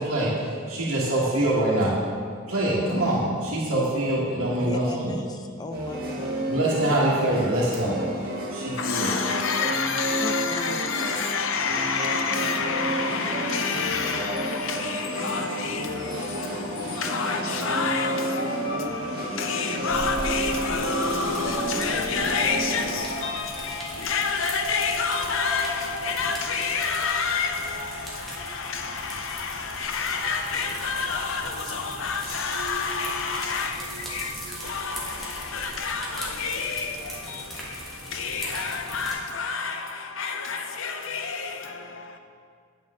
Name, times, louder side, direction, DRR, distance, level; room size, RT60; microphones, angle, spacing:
voice 1, 0.0-1.9 2.5-5.2 6.5-8.0 8.5-9.1, right 1 dB, 80° right, 1.6 m, -24 dB
voice 2, 4.6-6.5 10.2-10.8, left 2 dB, 20° left, 0.4 m, -37 dB
sound 1, 5.7-23.0, right 1 dB, 45° right, 1.4 m, -31 dB
voice 3, 8.8-42.2, left 5 dB, 65° left, 0.7 m, -29 dB
sound 2, 17.9-36.1, left 2 dB, 50° left, 1.4 m, -40 dB
sound 3, 19.9-39.1, right 1 dB, ahead, 1.3 m, -40 dB
9.0 x 7.6 x 3.7 m
head